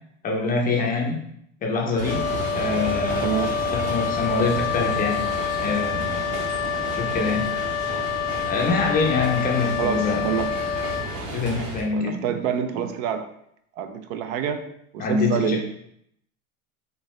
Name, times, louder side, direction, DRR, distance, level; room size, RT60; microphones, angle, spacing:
voice 1, 0.2-1.2 1.6-2.3 2.5-3.3 3.7-5.3 5.6-6.3 6.9-7.5 8.5-10.3 11.3-12.1 15.0-15.6, left 4 dB, 20° left, 0 dB, 0.4 m, -25 dB
Wind instrument woodwind instrument, 2.0-11.2, left 7 dB, 80° left, 0.6 m, -27 dB
sound 1, 2.0-11.8, right 1 dB, 35° right, 1.2 m, -32 dB
voice 2, 3.2-3.5 9.8-10.6 11.9-13.2 13.8-14.6 14.9-15.6, right 8 dB, 70° right, 8 dB, 0.6 m, -27 dB
4.5 x 2.7 x 3.1 m, 0.73 s
supercardioid pair, 135°, 41 cm